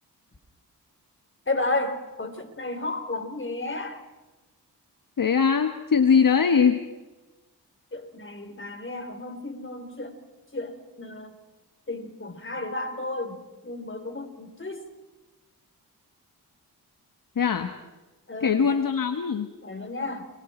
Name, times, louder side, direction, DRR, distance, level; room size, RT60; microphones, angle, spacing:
voice 1, 1.5-4.0 7.9-10.2 10.5-11.4 11.9-14.9 18.3-18.7 19.6-20.3, left 2 dB, 30° left, 7 dB, 3.9 m, -33 dB
voice 2, 5.2-6.8 17.3-17.7 18.4-19.5, left 6 dB, 55° left, 8 dB, 1.4 m, -21 dB
29.5 x 23.5 x 4.4 m, 1.1 s
cardioid pair, 50°, 40 cm